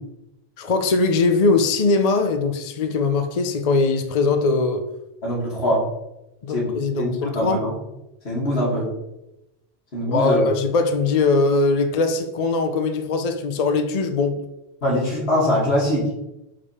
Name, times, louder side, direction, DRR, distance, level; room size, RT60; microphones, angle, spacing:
voice 1, 0.6-4.9 6.4-7.7 10.1-14.5, left 3 dB, 45° left, 0.6 m, -21 dB
voice 2, 5.2-5.8 6.5-6.7 7.0-7.7 8.2-8.9 9.9-10.4 14.8-16.0, left 1 dB, 80° left, 2.6 m, -22 dB
6.6 x 5.0 x 4.3 m
omnidirectional pair, 1.1 m